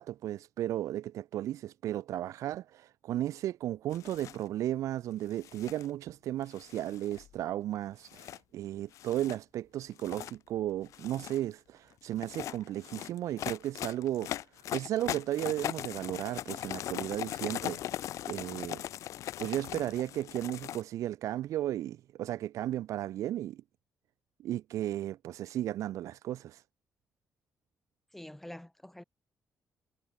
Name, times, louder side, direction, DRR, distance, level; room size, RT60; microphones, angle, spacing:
voice 1, 0.0-14.3 14.7-17.8 18.3-18.8 19.4-23.6 24.4-26.6, right 13 dB, 75° right, 1.5 m, -35 dB
sound 1, 3.9-4.4 5.3-5.9 6.6-7.3 8.1-8.4 8.9-9.4 9.9-10.4 10.9-11.4 12.1-20.8, left 12 dB, 75° left, 5.1 m, -39 dB
voice 2, 28.1-29.0, left 1 dB, 5° left, 6.2 m, -46 dB
cardioid pair, 175°, 5 cm